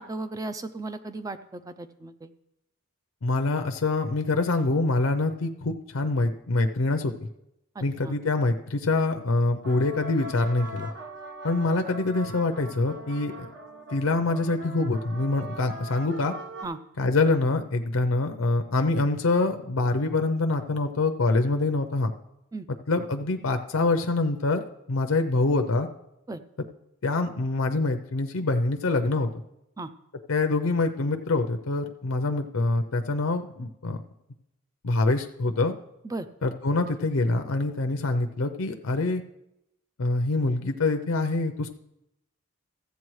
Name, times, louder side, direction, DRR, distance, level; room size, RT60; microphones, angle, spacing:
voice 1, 0.0-2.3 7.8-8.2 16.6-16.8 22.5-22.7 26.3-26.4 29.8-29.9 36.0-36.3, right 2 dB, 15° right, 11 dB, 0.4 m, -36 dB
voice 2, 3.2-7.3 7.8-10.9 11.4-13.5 13.9-16.3 17.0-22.1 22.7-24.6 24.9-25.9 27.0-29.3 30.3-34.0 34.8-35.7 36.4-39.2 40.0-41.7, left 2 dB, 75° left, 6 dB, 0.6 m, -25 dB
sound 1, 9.5-16.6, equal, 55° right, 1.2 m, -41 dB
15.5 x 8.1 x 3.1 m, 0.86 s
head